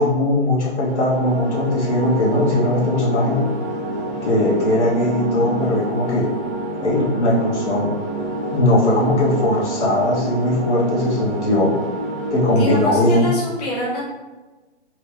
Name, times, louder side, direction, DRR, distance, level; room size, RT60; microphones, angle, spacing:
voice 1, 0.0-3.4 4.2-6.3 6.8-8.0 8.5-11.7 12.3-13.3, left 1 dB, 80° left, -4 dB, 1.1 m, -19 dB
sound 1, 0.8-12.7, right 1 dB, 30° right, 0.8 m, -27 dB
voice 2, 12.5-14.0, left 1 dB, 35° left, -5 dB, 0.6 m, -26 dB
3.1 x 2.1 x 3.2 m, 1.2 s
hypercardioid pair, 170°, 35 cm